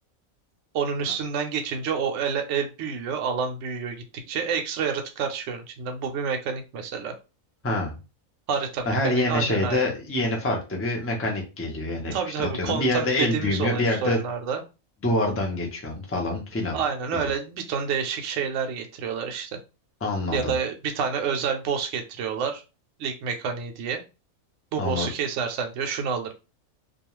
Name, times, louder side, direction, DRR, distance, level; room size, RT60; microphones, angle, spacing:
voice 1, 0.7-7.1 8.5-9.9 12.1-14.6 16.7-19.5 20.3-22.6 23.0-24.0 24.7-26.3, right 6 dB, 70° right, 5 dB, 0.8 m, -28 dB
voice 2, 7.6-8.0 8.9-14.3 15.0-16.8 20.0-20.6 24.8-25.1, left 1 dB, 20° left, 0 dB, 0.4 m, -26 dB
2.3 x 2.3 x 3.0 m, 0.29 s
omnidirectional pair, 1.4 m